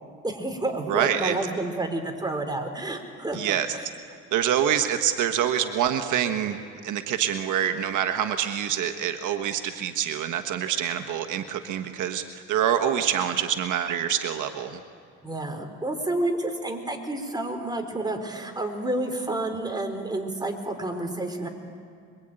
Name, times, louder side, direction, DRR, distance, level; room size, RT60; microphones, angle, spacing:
voice 1, 0.2-3.6 15.2-21.5, right 2 dB, 15° right, 4 dB, 3.9 m, -30 dB
voice 2, 0.9-1.3 3.3-3.7 4.3-6.6 6.8-14.8, right 9 dB, 80° right, 6 dB, 1.4 m, -26 dB
26.0 x 22.5 x 9.0 m, 2.2 s
cardioid pair, 90°, 30 cm